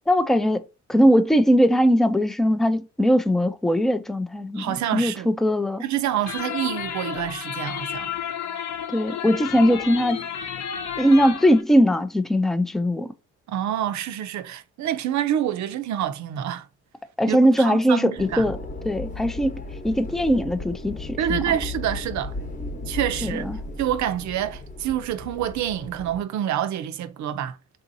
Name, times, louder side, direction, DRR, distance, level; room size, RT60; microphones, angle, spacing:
voice 1, 0.1-0.6 0.9-5.8 8.9-10.2 11.0-13.1 17.2-18.6 18.9-21.4 23.2-23.6, equal, ahead, 0.3 m, -20 dB
voice 2, 4.6-5.3 5.8-8.1 13.5-16.7 17.3-18.5 21.2-22.4 22.9-23.5 23.8-27.6, right 11 dB, 70° right, 0.5 m, -27 dB
sound 1, 6.3-11.6, left 8 dB, 65° left, 0.7 m, -32 dB
sound 2, 18.2-26.2, left 2 dB, 25° left, 0.9 m, -35 dB
3.7 x 2.7 x 2.6 m
cardioid pair, 90°, 30 cm